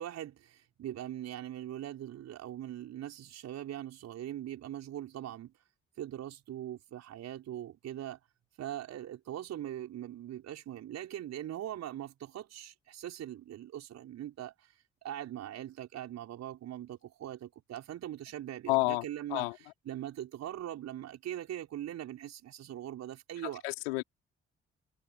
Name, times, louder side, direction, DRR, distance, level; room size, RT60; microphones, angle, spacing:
voice 1, 0.0-5.5 6.0-8.2 8.6-14.5 15.0-19.5 19.8-23.6, right 12 dB, 60° right, 6.1 m, -41 dB
voice 2, 18.7-19.0 19.3-19.5 23.6-24.0, left 25 dB, 75° left, 4.2 m, -29 dB
figure-of-eight pair, 40°, 31 cm